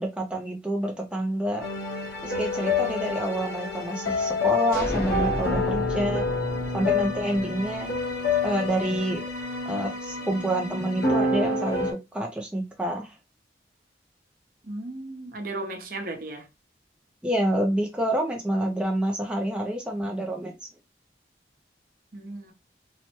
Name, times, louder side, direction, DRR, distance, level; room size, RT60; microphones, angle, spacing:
voice 1, 0.0-1.6 2.2-6.2 6.7-7.9 8.4-9.2 9.7-13.1 17.2-20.7, right 1 dB, 5° right, 0.4 m, -28 dB
sound 1, 1.6-11.9, left 3 dB, 80° left, 1.1 m, -28 dB
sound 2, 4.7-8.4, left 1 dB, 55° left, 0.8 m, -34 dB
voice 2, 14.6-16.5 22.1-22.5, right 2 dB, 50° right, 0.7 m, -35 dB
3.1 x 2.1 x 2.8 m
head